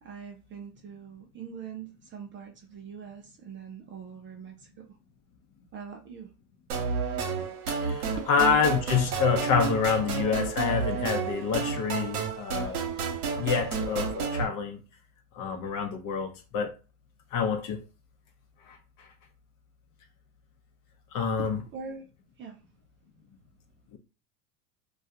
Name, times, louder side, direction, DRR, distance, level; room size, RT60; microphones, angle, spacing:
voice 1, 0.0-4.9 5.7-6.3 8.2-8.3 21.4-22.1 22.4-22.6, right 6 dB, 30° right, 0.4 m, -43 dB
sound 1, 6.7-14.4, right 5 dB, 75° right, 0.9 m, -31 dB
voice 2, 7.7-12.8 13.4-14.8 15.3-16.7 17.3-17.8 18.7-18.8 21.1-21.6 23.9-24.0, left 6 dB, 45° left, 0.7 m, -27 dB
2.3 x 2.3 x 2.7 m
hypercardioid pair, 85°, 46 cm